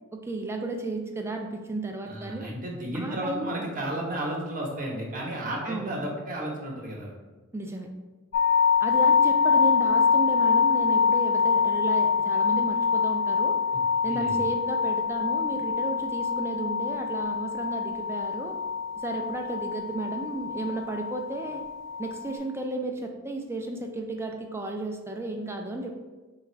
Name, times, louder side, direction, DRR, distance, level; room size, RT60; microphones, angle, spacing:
voice 1, 0.1-2.5 2.9-3.6 5.6-5.9 7.5-7.9 8.8-13.6 14.0-18.6 19.0-21.6 22.0-26.0, right 2 dB, 10° right, 3 dB, 0.4 m, -33 dB
voice 2, 2.1-7.1 13.7-13.8 14.1-14.4, right 1 dB, 40° right, -1 dB, 0.9 m, -33 dB
sound 1, 8.3-22.4, left 6 dB, 50° left, 0.6 m, -25 dB
4.0 x 2.4 x 4.5 m, 1.2 s
head